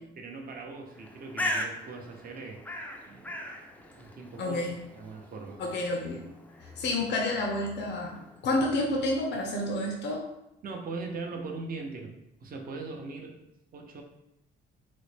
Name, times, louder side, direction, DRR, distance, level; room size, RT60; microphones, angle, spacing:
voice 1, 0.2-2.6 3.1-3.5 3.8-4.6 5.0-5.6 10.6-12.1 12.4-13.4 13.7-14.0, right 3 dB, 45° right, 2 dB, 0.6 m, -40 dB
Bird, 0.9-8.5, left 1 dB, 10° left, 0.4 m, -39 dB
voice 2, 4.4-4.7 5.6-6.3 6.8-10.2, left 2 dB, 60° left, 0 dB, 0.6 m, -29 dB
3.9 x 2.1 x 3.2 m, 0.83 s
cardioid pair, 90°, 20 cm